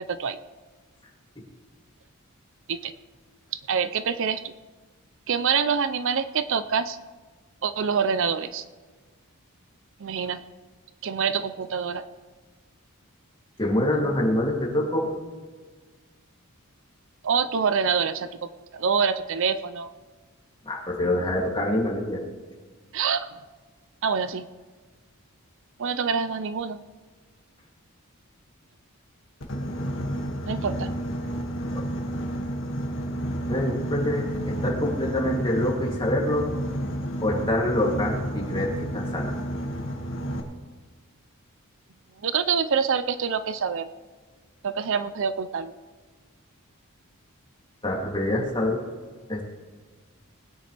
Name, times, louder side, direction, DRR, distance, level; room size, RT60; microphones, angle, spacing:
voice 1, 3.7-4.5 5.3-7.0 7.6-8.6 10.0-10.4 11.0-12.0 17.2-19.9 22.9-23.3 24.0-24.4 25.8-26.8 30.5-30.9 42.2-43.9 44.6-45.7, right 6 dB, 60° right, 12 dB, 0.5 m, -26 dB
voice 2, 13.6-15.1 20.6-22.2 33.5-36.5 37.2-39.3 47.8-48.8 49.3-49.4, left 1 dB, 20° left, -3 dB, 2.7 m, -25 dB
Boat Water vehicle, 29.4-40.4, equal, 60° left, 2.0 m, -31 dB
21.0 x 9.8 x 3.4 m, 1.4 s
head